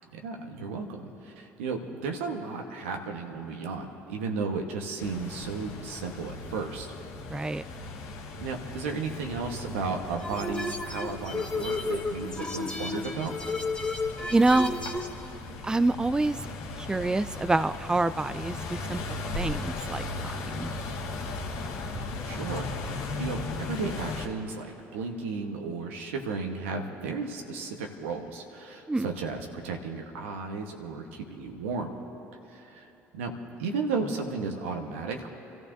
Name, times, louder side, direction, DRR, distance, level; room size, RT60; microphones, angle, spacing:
voice 1, 0.1-6.9 8.4-13.3 22.2-22.7 23.2-31.9 32.5-33.3 33.6-35.3, right 4 dB, 85° right, 3 dB, 1.3 m, -34 dB
sound 1, 5.0-24.3, left 2 dB, 65° left, 1.6 m, -37 dB
voice 2, 7.3-7.6 14.3-14.8 15.6-16.4 16.8-19.0 19.3-20.7 28.9-29.1, right 2 dB, 10° right, 13 dB, 0.4 m, -26 dB
sound 2, 10.2-15.1, left 3 dB, 15° left, 1.5 m, -33 dB
28.5 x 14.0 x 2.7 m, 2.9 s
hypercardioid pair, 65°, 7 cm